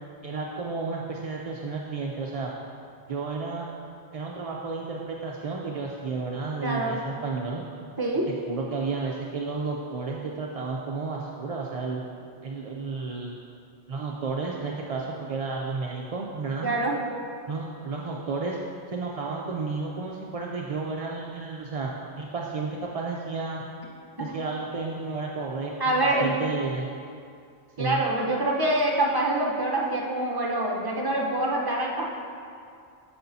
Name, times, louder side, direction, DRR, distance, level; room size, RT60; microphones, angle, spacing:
voice 1, 0.2-2.5 3.1-3.7 4.1-7.6 8.5-12.0 12.4-13.4 13.9-16.7 17.5-18.6 18.9-21.9 22.2-23.6 24.2-26.9 27.8-28.0, right 4 dB, 50° right, -2 dB, 0.4 m, -32 dB
voice 2, 6.6-6.9 8.0-8.3 16.6-16.9 24.2-24.3 25.8-26.3 27.8-32.0, right 1 dB, 25° right, -2 dB, 0.8 m, -25 dB
8.6 x 7.1 x 2.7 m, 2.4 s
omnidirectional pair, 1.2 m